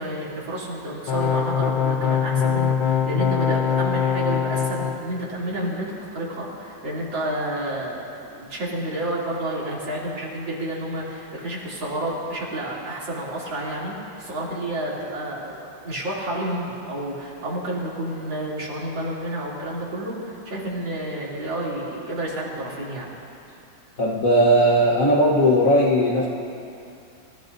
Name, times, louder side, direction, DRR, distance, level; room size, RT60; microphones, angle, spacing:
voice 1, 0.0-23.1, right 1 dB, 75° right, -6 dB, 3.8 m, -30 dB
sound 1, 1.1-5.0, left 7 dB, 70° left, 1.5 m, -22 dB
voice 2, 24.0-26.3, equal, 50° left, -3 dB, 1.5 m, -18 dB
27.5 x 15.0 x 2.7 m, 2.6 s
omnidirectional pair, 2.1 m